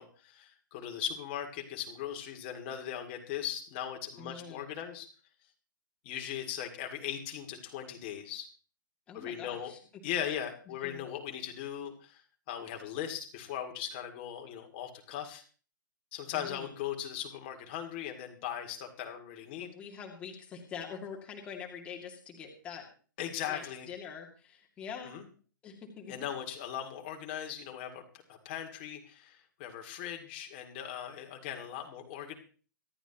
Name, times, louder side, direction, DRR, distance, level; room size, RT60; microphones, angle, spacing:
voice 1, 0.0-5.1 6.0-8.5 9.1-9.7 10.0-12.2 12.5-15.4 16.1-19.7 23.2-23.9 25.1-25.2 26.1-28.0 28.3-32.3, left 10 dB, 25° left, 3 dB, 2.3 m, -39 dB
voice 2, 4.2-4.6 9.1-10.0 10.8-11.1 16.3-16.7 19.6-22.9 23.5-25.1 25.6-26.3, left 6 dB, 10° left, -1 dB, 2.3 m, -45 dB
25.0 x 10.5 x 3.0 m, 0.40 s
hypercardioid pair, 165°, 11 cm